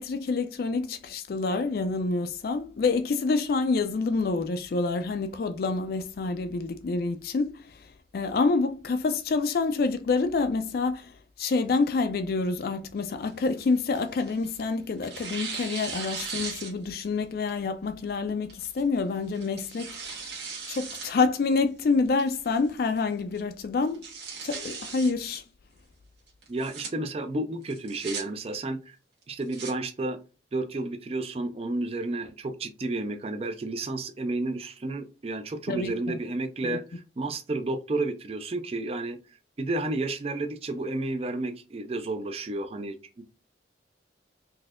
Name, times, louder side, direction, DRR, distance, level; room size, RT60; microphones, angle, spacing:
voice 1, 0.0-7.7 8.1-11.1 11.4-20.1 20.7-24.0 24.4-25.4 35.7-36.2 36.6-36.8, left 4 dB, 55° left, 0.3 m, -27 dB
Tearing, 13.2-14.6 15.0-17.1 17.5-17.6 18.5-18.8 19.3-21.1 21.5-21.6 22.2-22.6 23.0-23.1 23.3-23.4 23.8-25.1 26.4-26.9 27.7-28.2 29.2-29.7, right 5 dB, 65° right, 1.3 m, -38 dB
voice 2, 26.5-29.0 29.3-30.2 30.5-39.2 39.6-43.2, right 2 dB, 30° right, 0.4 m, -31 dB
4.0 x 2.7 x 2.4 m
head